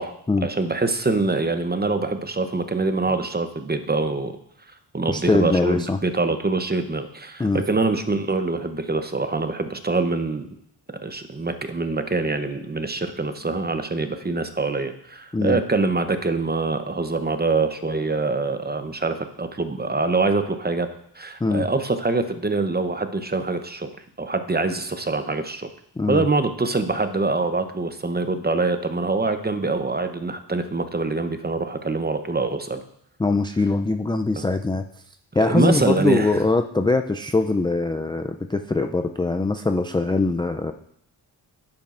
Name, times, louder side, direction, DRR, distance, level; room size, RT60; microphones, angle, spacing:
voice 1, 0.4-4.3 4.9-10.4 11.0-20.9 21.2-23.9 24.2-25.7 26.1-32.8 35.4-36.3, right 3 dB, 20° right, 8 dB, 0.8 m, -24 dB
voice 2, 5.1-6.0 7.4-7.6 15.3-15.6 21.4-21.7 26.0-26.3 33.2-34.8 35.3-40.7, left 3 dB, 10° left, 5 dB, 0.4 m, -22 dB
10.5 x 8.6 x 2.5 m, 0.73 s
cardioid pair, 70°, 44 cm